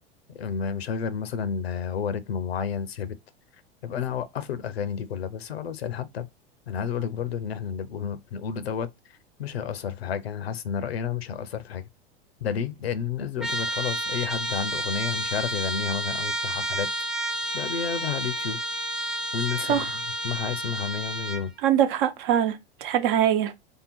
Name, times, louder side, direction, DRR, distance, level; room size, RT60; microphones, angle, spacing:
voice 1, 0.4-3.2 3.8-6.3 6.7-8.9 9.4-11.8 12.4-16.9 17.2-18.6 19.3-19.9 20.2-21.5, left 7 dB, 75° left, 0.7 m, -31 dB
Trumpet, 13.4-21.5, right 1 dB, ahead, 0.4 m, -30 dB
voice 2, 21.6-23.5, right 10 dB, 55° right, 0.9 m, -23 dB
3.4 x 2.8 x 4.3 m
hypercardioid pair, 95°, 31 cm